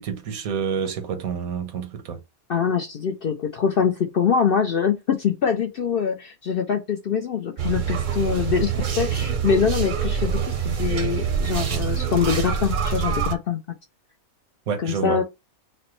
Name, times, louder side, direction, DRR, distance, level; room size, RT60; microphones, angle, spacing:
voice 1, 0.0-2.2 14.7-15.2, right 6 dB, 85° right, 1.3 m, -28 dB
voice 2, 2.5-13.6 14.8-15.2, left 7 dB, 65° left, 0.6 m, -24 dB
sound 1, 7.6-13.3, right 7 dB, 50° right, 0.6 m, -25 dB
5.8 x 2.1 x 3.0 m
omnidirectional pair, 1.5 m